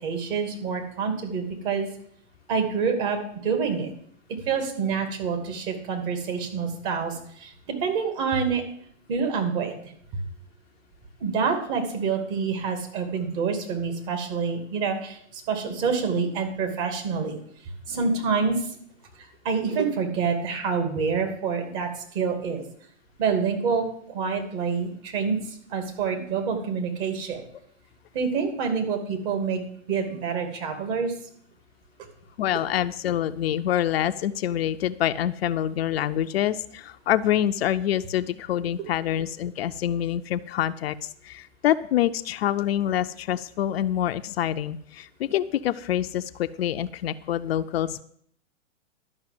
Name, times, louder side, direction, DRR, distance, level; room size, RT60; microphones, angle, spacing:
voice 1, 0.0-1.9 2.5-3.9 4.5-8.6 9.1-9.7 11.2-17.4 17.9-18.6 19.4-21.9 22.1-22.6 23.2-25.4 25.7-27.4 28.1-29.6 29.9-31.1, right 5 dB, 40° right, 5 dB, 2.6 m, -27 dB
voice 2, 32.4-40.9 41.2-48.0, left 11 dB, 55° left, 10 dB, 0.6 m, -26 dB
12.0 x 5.8 x 7.7 m, 0.64 s
hypercardioid pair, 130°, 38 cm